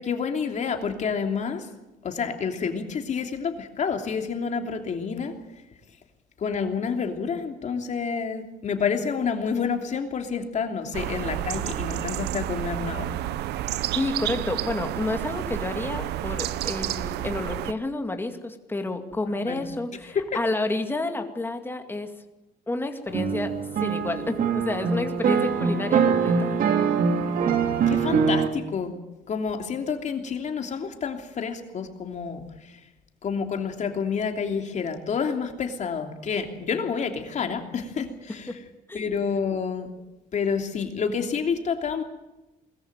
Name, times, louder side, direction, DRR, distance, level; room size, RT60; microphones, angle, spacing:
voice 1, 0.0-1.7 2.0-5.3 6.4-13.1 19.3-19.6 20.1-20.2 27.9-29.0 29.3-32.8 33.2-38.6 38.9-39.9 40.3-42.0, left 6 dB, 45° left, 5 dB, 3.0 m, -29 dB
sound 1, 10.9-17.7, right 13 dB, 80° right, 0.9 m, -30 dB
voice 2, 13.9-22.1 22.7-23.5 23.8-26.6 38.5-38.6 38.9-39.1, left 2 dB, 10° left, 6 dB, 2.3 m, -30 dB
sound 2, 23.1-28.5, right 6 dB, 55° right, 2.3 m, -23 dB
21.5 x 14.5 x 9.4 m, 1.0 s
cardioid pair, 110°, 17 cm